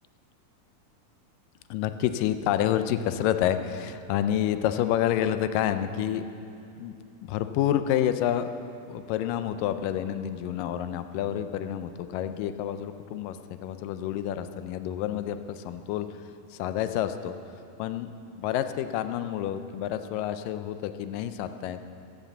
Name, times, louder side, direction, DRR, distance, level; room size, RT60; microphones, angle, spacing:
voice 1, 1.7-6.2 6.8-6.9 7.2-8.5 8.9-16.1 16.5-17.4 17.8-21.8, left 11 dB, 90° left, 10 dB, 2.3 m, -28 dB
15.0 x 9.3 x 7.0 m, 2.6 s
omnidirectional pair, 3.8 m